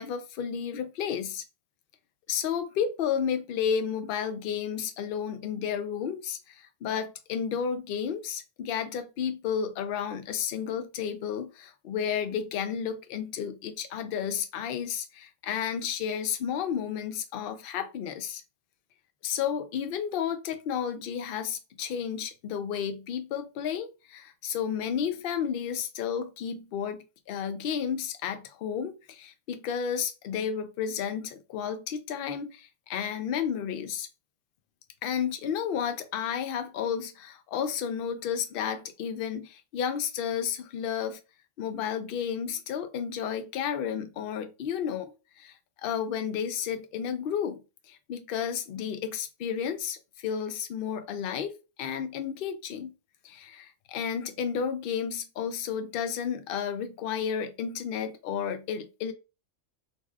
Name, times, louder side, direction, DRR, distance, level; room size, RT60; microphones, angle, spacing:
voice 1, 0.0-1.4 2.3-18.4 19.2-27.0 27.3-34.1 35.0-41.2 41.6-45.6 45.8-47.6 47.9-52.9 53.2-59.1, left 8 dB, 60° left, 0.6 m, -32 dB
2.6 x 2.3 x 3.2 m
omnidirectional pair, 1.3 m